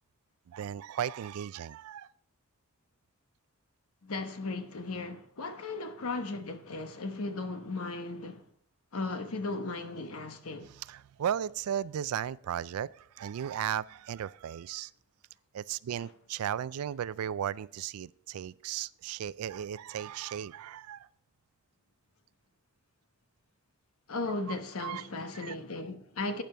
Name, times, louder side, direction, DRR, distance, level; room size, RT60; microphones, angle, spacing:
voice 1, 0.5-2.1 10.7-14.9 15.5-21.1 24.8-25.0 25.4-25.6, right 9 dB, 85° right, 0.3 m, -35 dB
voice 2, 4.0-8.4 8.9-10.7 15.9-16.0 24.1-26.4, left 3 dB, 75° left, 1.0 m, -36 dB
12.0 x 9.0 x 3.4 m
head